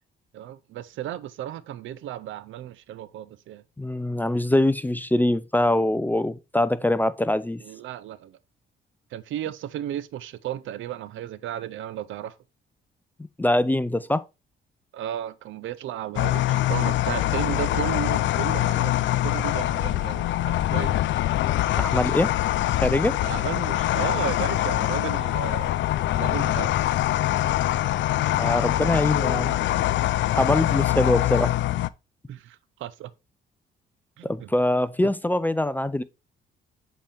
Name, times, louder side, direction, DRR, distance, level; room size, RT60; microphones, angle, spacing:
voice 1, 0.3-3.6 7.6-8.4 9.1-12.4 14.9-21.0 23.2-25.7 26.2-26.8 32.3-33.1 34.2-34.5 35.0-35.1, right 11 dB, 80° right, 0.6 m, -34 dB
voice 2, 3.8-7.6 13.4-14.2 21.8-22.3 22.8-23.2 28.3-29.5 30.3-31.5 34.2-36.0, left 1 dB, 10° left, 0.4 m, -23 dB
sound 1, 16.2-31.9, left 14 dB, 70° left, 0.4 m, -24 dB
7.4 x 4.4 x 3.3 m
cardioid pair, 90°, 20 cm